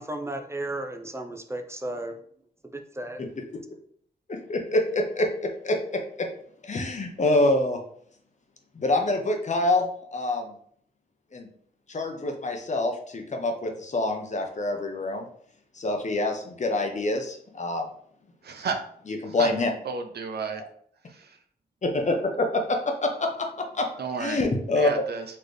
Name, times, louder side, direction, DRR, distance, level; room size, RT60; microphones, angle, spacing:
voice 1, 0.0-2.1 2.7-3.2, right 1 dB, 15° right, 4 dB, 0.5 m, -34 dB
voice 2, 4.3-6.3 6.6-7.8 8.7-10.5 11.3-11.5 11.9-15.3 15.7-17.9 19.1-19.7 21.8-23.5 23.7-23.9 24.2-24.9, left 2 dB, 45° left, 4 dB, 0.8 m, -26 dB
voice 3, 18.4-18.8 19.4-19.5 19.8-20.6 21.1-21.4 24.0-24.4 24.8-25.3, right 5 dB, 70° right, 7 dB, 0.6 m, -32 dB
4.2 x 3.2 x 3.2 m, 0.62 s
cardioid pair, 85°, 17 cm